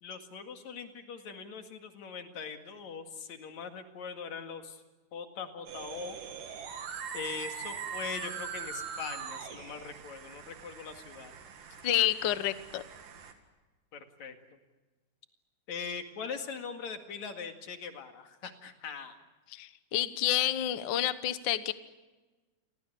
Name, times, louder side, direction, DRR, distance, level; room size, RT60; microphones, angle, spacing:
voice 1, 0.0-4.8 5.1-6.2 7.1-11.3 13.9-14.6 15.7-19.2, left 6 dB, 65° left, 6 dB, 3.2 m, -41 dB
sound 1, 5.7-13.3, right 7 dB, 85° right, 3.8 m, -42 dB
voice 2, 11.8-12.8 19.5-21.7, left 13 dB, 85° left, 13 dB, 1.0 m, -29 dB
30.0 x 23.5 x 6.9 m, 1.3 s
omnidirectional pair, 3.7 m